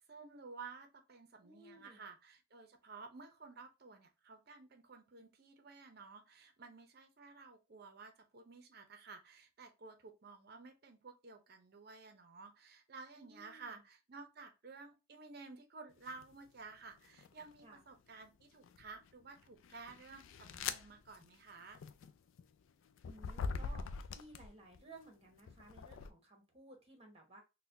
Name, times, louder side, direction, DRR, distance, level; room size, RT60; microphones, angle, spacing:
voice 1, 0.1-21.8, right 4 dB, 50° right, 0.7 m, -54 dB
voice 2, 1.4-2.0 13.1-13.8 17.6-17.8 23.0-23.8 24.1-27.4, right 2 dB, 30° right, 1.1 m, -58 dB
sound 1, 16.1-16.3 17.0-17.7 18.4-24.8 25.4-26.1, left 5 dB, 75° left, 0.4 m, -44 dB
4.0 x 2.2 x 2.6 m
head